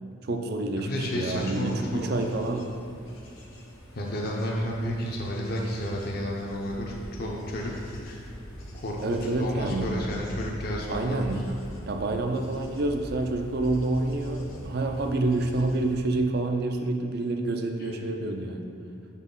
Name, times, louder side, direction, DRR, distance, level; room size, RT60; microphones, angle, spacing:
voice 1, 0.2-2.7 9.0-9.9 10.9-11.4 11.9-18.7, right 2 dB, 50° right, 5 dB, 0.4 m, -28 dB
voice 2, 0.8-2.1 3.9-7.7 8.0-8.2 8.8-11.5 17.8-18.0, left 1 dB, 45° left, -2 dB, 0.6 m, -31 dB
Bird / Insect / Wind, 0.9-15.9, equal, 85° left, 1.0 m, -43 dB
6.2 x 4.1 x 3.7 m, 2.6 s
head